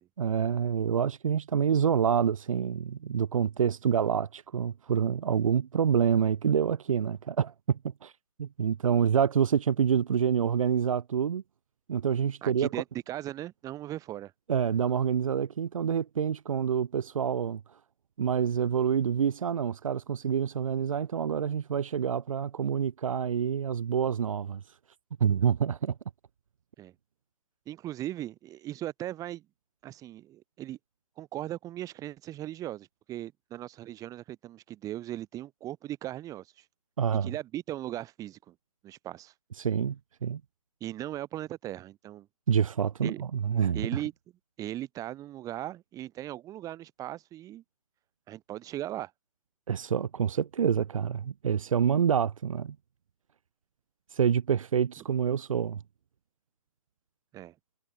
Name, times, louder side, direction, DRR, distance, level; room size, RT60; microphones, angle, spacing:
voice 1, 0.2-8.1 8.4-11.4 11.9-12.7 14.5-17.6 18.2-24.6 25.2-25.9 37.0-37.3 39.6-40.0 40.2-40.4 42.5-43.9 49.7-52.8 54.1-55.8, right 8 dB, 60° right, 3.6 m, -27 dB
voice 2, 12.4-14.3 26.8-26.9 27.7-29.4 29.8-30.8 31.2-36.6 37.2-38.5 38.8-39.3 40.8-42.3 43.0-43.3 43.7-44.1 44.6-47.6 48.3-49.1 57.3-57.5, right 13 dB, 15° right, 7.2 m, -38 dB
hypercardioid pair, 145°, 19 cm